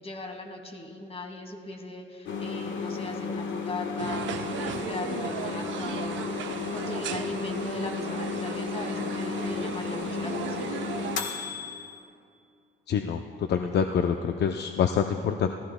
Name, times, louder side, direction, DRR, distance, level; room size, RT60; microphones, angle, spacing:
voice 1, 0.0-10.7, left 2 dB, 30° left, 4 dB, 1.8 m, -39 dB
sound 1, 2.3-12.0, left 5 dB, 70° left, 1.3 m, -33 dB
sound 2, 4.0-11.2, right 8 dB, 70° right, 0.7 m, -36 dB
voice 2, 12.9-13.2 13.5-15.5, left 7 dB, 55° left, 5 dB, 0.6 m, -26 dB
20.5 x 14.5 x 2.2 m, 2.4 s
cardioid pair, 90°, 20 cm